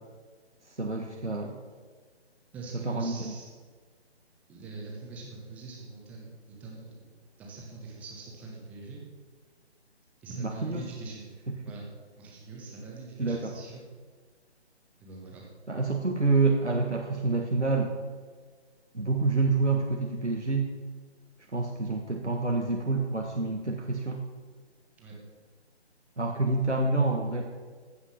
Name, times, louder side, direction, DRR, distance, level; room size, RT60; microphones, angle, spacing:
voice 1, 0.8-1.6 2.8-3.3 10.4-10.8 13.2-13.5 15.7-17.9 18.9-20.7 21.5-24.2 26.2-27.4, right 3 dB, 90° right, 1 dB, 1.5 m, -27 dB
voice 2, 2.5-3.5 4.5-9.0 10.2-11.2 11.6-11.8 12.2-13.8 15.0-15.5 25.0-25.1, right 3 dB, 5° right, -2 dB, 1.0 m, -43 dB
15.0 x 5.6 x 6.5 m, 1.5 s
figure-of-eight pair, 145°, 34 cm